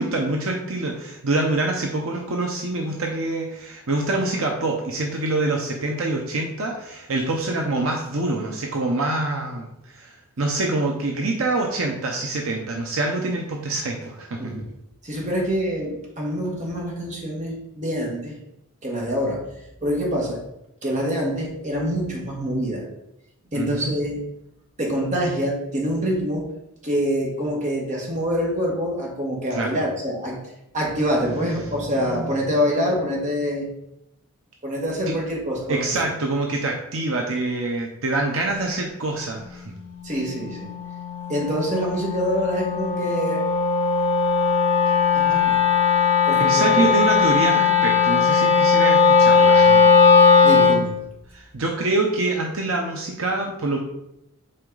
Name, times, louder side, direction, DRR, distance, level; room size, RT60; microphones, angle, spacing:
voice 1, 0.0-14.5 23.5-23.9 29.5-29.8 35.1-35.2 35.7-39.7 46.4-49.9 51.3-53.8, right 2 dB, 65° right, 1 dB, 0.8 m, -25 dB
voice 2, 15.0-18.3 18.8-19.5 19.8-20.4 20.8-22.9 23.5-24.2 24.8-26.5 26.8-30.4 30.7-33.7 34.6-36.0 40.0-40.7 41.3-43.4 45.1-45.6 46.3-46.9 50.4-51.0, equal, 35° right, -2 dB, 1.7 m, -25 dB
Wind instrument woodwind instrument, 39.3-50.9, left 5 dB, 25° left, 1.7 m, -18 dB
7.7 x 4.4 x 3.9 m, 0.85 s
head